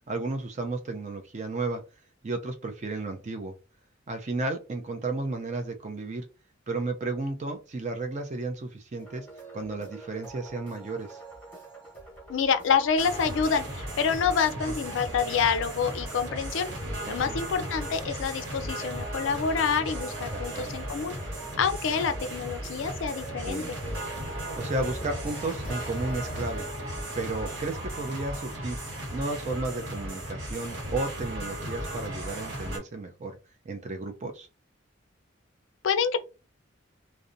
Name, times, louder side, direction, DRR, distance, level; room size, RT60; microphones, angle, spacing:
voice 1, 0.1-1.8 2.2-3.5 4.1-6.3 6.7-9.3 9.5-11.2 14.7-14.8 17.1-17.4 20.3-20.8 23.5-23.7 24.6-26.7 27.2-28.8 29.1-33.4 33.6-34.5, right 2 dB, 35° right, 0.4 m, -33 dB
sound 1, 9.0-26.5, right 2 dB, 10° left, 0.9 m, -45 dB
voice 2, 12.3-16.7 17.1-21.1 21.6-23.8 35.8-36.2, left 6 dB, 70° left, 0.4 m, -27 dB
sound 2, 13.0-32.8, right 1 dB, 75° right, 1.0 m, -36 dB
2.7 x 2.1 x 2.5 m
head